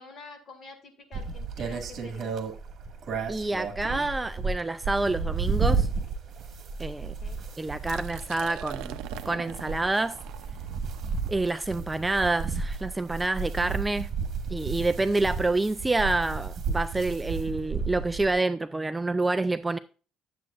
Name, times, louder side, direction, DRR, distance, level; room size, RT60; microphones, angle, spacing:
voice 1, 0.0-2.4 7.0-7.4, left 4 dB, 40° left, 2.1 m, -48 dB
sound 1, 1.1-18.4, right 4 dB, 45° right, 1.7 m, -32 dB
voice 2, 3.3-5.9 6.8-7.1 7.6-10.2 11.3-14.1 14.5-19.8, right 2 dB, 10° right, 0.3 m, -28 dB
Liquid, 7.7-13.5, right 14 dB, 90° right, 0.5 m, -44 dB
11.0 x 7.7 x 2.5 m
cardioid pair, 140°, 0 cm